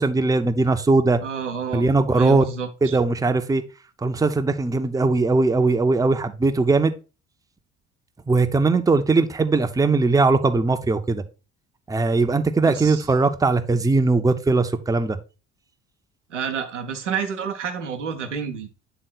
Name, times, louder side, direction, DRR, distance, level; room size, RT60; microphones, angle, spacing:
voice 1, 0.0-1.2 1.7-2.4 2.8-3.6 4.0-6.9 8.3-11.2 11.9-15.2, right 3 dB, 10° right, 0.6 m, -20 dB
voice 2, 1.2-1.9 2.1-3.0 12.7-13.0 16.3-18.7, right 6 dB, 90° right, 0.9 m, -29 dB
8.0 x 3.7 x 4.0 m
figure-of-eight pair, 55°, 35 cm